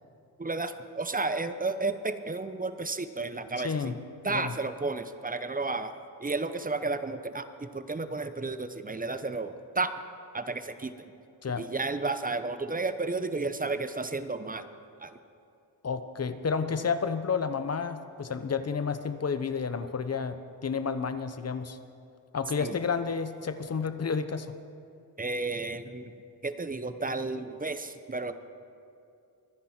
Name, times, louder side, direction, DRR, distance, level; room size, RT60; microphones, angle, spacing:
voice 1, 0.4-4.0 4.2-5.9 6.2-9.9 10.3-10.9 11.6-14.7 15.0-15.2 22.6-22.8 25.2-26.1 26.4-28.3, right 3 dB, 20° right, 10 dB, 0.9 m, -32 dB
voice 2, 3.6-4.0 4.3-4.5 11.4-11.6 15.8-21.8 22.3-24.5, left 5 dB, 35° left, 11 dB, 0.9 m, -31 dB
24.0 x 10.5 x 4.4 m, 2.5 s
cardioid pair, 70°, 42 cm